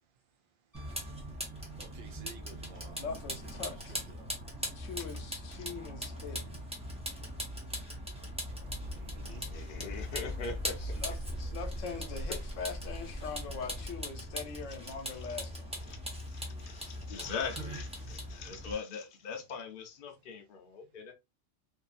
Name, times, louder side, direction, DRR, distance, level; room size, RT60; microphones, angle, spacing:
Piano, 0.7-2.3 4.7-4.8, right 8 dB, 15° left, 1.0 m, -62 dB
Vehicle, 0.7-18.7, equal, 5° right, 0.5 m, -41 dB
voice 1, 1.8-4.3 8.9-9.4 11.8-12.2 17.4-17.5 19.3-19.4, right 5 dB, 50° right, 0.8 m, -54 dB
voice 2, 3.0-3.9 4.7-6.4 10.8-15.7, left 5 dB, 85° left, 1.1 m, -42 dB
sound 1, 8.5-13.9, equal, 85° right, 0.3 m, -42 dB
voice 3, 9.5-11.0 15.2-15.3 15.9-16.0 16.3-21.1, left 5 dB, 50° left, 0.7 m, -41 dB
2.7 x 2.6 x 2.3 m
omnidirectional pair, 1.3 m